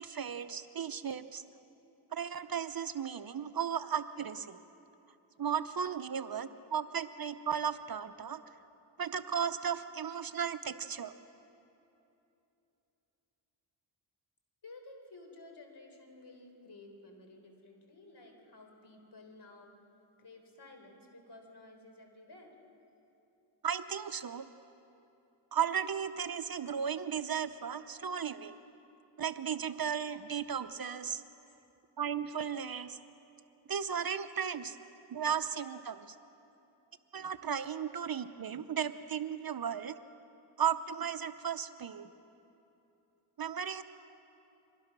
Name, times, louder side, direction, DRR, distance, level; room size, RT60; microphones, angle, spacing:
voice 1, 0.0-1.4 2.1-4.6 5.4-8.4 9.0-11.1 23.6-24.5 25.5-28.5 29.2-31.2 32.0-33.0 33.7-34.8 35.1-36.1 37.1-40.0 40.6-42.1 43.4-43.8, right 8 dB, 45° right, 11 dB, 0.8 m, -35 dB
voice 2, 14.6-19.7 20.2-22.5 35.6-35.8, left 2 dB, 55° left, 3 dB, 4.0 m, -54 dB
24.0 x 20.0 x 6.1 m, 2.9 s
cardioid pair, 60°, 49 cm